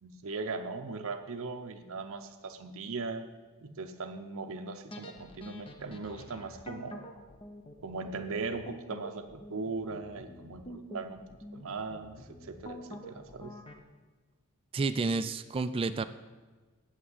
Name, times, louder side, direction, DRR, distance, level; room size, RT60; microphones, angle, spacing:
voice 1, 0.0-3.3 3.6-7.1 7.8-11.2 11.5-13.5, right 3 dB, 65° right, 5 dB, 0.6 m, -39 dB
sound 1, 4.9-13.8, equal, 25° left, 0.7 m, -47 dB
voice 2, 14.7-16.0, right 3 dB, 25° right, 10 dB, 0.3 m, -30 dB
8.1 x 6.0 x 7.9 m, 1.3 s
head